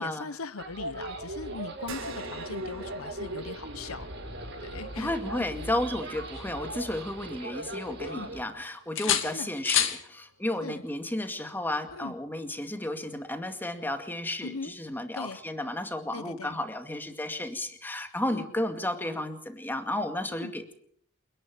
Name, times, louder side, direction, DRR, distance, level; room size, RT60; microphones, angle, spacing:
voice 1, 0.0-4.1 4.6-5.2 6.7-6.8 8.0-8.3 9.1-9.5 10.6-10.8 11.9-12.1 14.4-14.7 15.1-15.4 16.1-16.6 18.3-18.4 20.3-20.5, left 4 dB, 90° left, 1.0 m, -40 dB
sound 1, 0.6-8.4, right 1 dB, 55° right, 6.8 m, -39 dB
sound 2, 1.8-10.5 10.9-11.0 12.5-12.6, right 2 dB, 80° right, 5.8 m, -48 dB
voice 2, 5.0-20.7, left 1 dB, 10° left, 2.2 m, -33 dB
sound 3, 5.8-7.4 7.7-8.5 9.0-10.0 11.9-12.1, left 10 dB, 65° left, 2.3 m, -31 dB
28.5 x 11.0 x 9.0 m
head